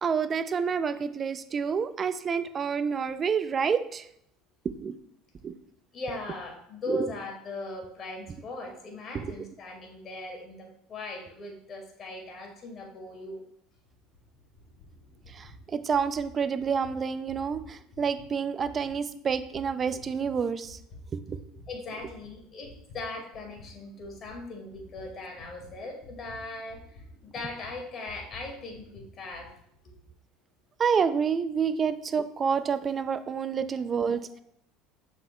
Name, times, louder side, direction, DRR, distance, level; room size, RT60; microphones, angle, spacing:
voice 1, 0.0-4.1 4.8-4.9 5.4-5.5 6.9-7.1 9.1-9.3 15.3-20.8 21.1-21.4 30.8-34.4, right 6 dB, 35° right, 12 dB, 0.4 m, -28 dB
voice 2, 5.9-13.4 21.7-29.5 29.8-30.0, left 2 dB, 40° left, 1 dB, 2.1 m, -39 dB
sound 1, 13.7-21.7 22.0-29.5, left 1 dB, 65° left, 2.4 m, -52 dB
7.3 x 5.6 x 2.3 m, 0.74 s
supercardioid pair, 100°, 0 cm